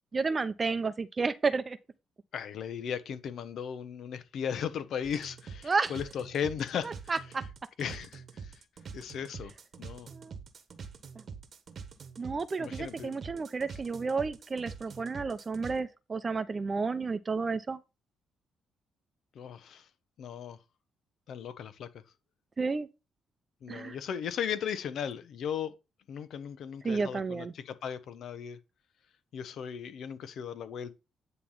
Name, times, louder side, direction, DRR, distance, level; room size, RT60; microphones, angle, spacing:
voice 1, 0.1-1.8 5.6-5.9 7.1-7.4 10.1-10.3 12.2-17.8 22.6-22.9 23.7-24.0 26.8-27.5, right 4 dB, 30° right, 0.7 m, -31 dB
voice 2, 2.3-7.1 7.8-8.6 8.9-9.5 9.8-10.1 12.6-13.1 19.3-19.9 20.2-20.6 21.3-21.9 23.6-25.7 26.1-28.6 29.3-31.0, left 8 dB, 70° left, 1.0 m, -36 dB
sound 1, 5.0-15.8, right 5 dB, 50° right, 1.2 m, -45 dB
9.7 x 3.3 x 5.7 m
cardioid pair, 90°, 0 cm